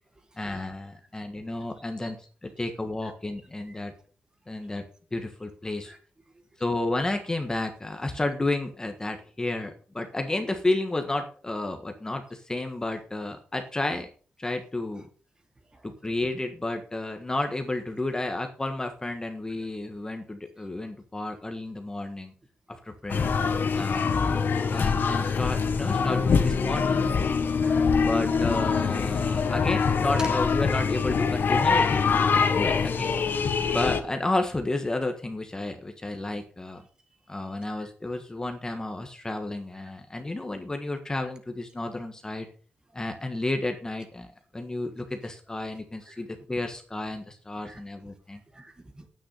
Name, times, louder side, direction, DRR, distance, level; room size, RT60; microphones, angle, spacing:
voice 1, 0.4-2.2 2.4-3.9 4.5-4.8 5.1-5.9 6.6-14.1 14.4-15.1 15.8-22.3 22.8-23.3 23.7-24.1 24.7-27.3 28.0-32.0 32.3-33.1 33.7-36.8 37.3-42.5 42.9-44.3 44.5-48.4, left 2 dB, 15° left, 5 dB, 1.4 m, -31 dB
sound 1, 23.1-34.0, left 5 dB, 55° left, 1.3 m, -24 dB
voice 2, 27.3-27.8 30.2-30.3 46.1-46.2 47.6-47.8 48.5-49.1, right 2 dB, 20° right, 7 dB, 1.8 m, -45 dB
9.9 x 9.2 x 5.6 m, 0.40 s
wide cardioid pair, 145°, 4 cm